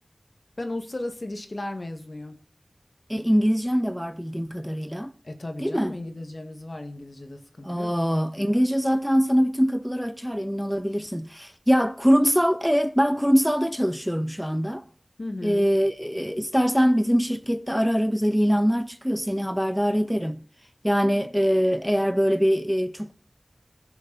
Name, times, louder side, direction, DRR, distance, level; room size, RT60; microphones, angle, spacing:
voice 1, 0.6-2.4 5.2-7.9 15.2-15.7, left 2 dB, 60° left, 1.8 m, -35 dB
voice 2, 3.1-5.1 5.6-5.9 7.6-14.8 15.4-20.4 20.8-23.1, equal, ahead, 0.6 m, -23 dB
20.5 x 7.0 x 4.0 m
wide cardioid pair, 50°, 0 cm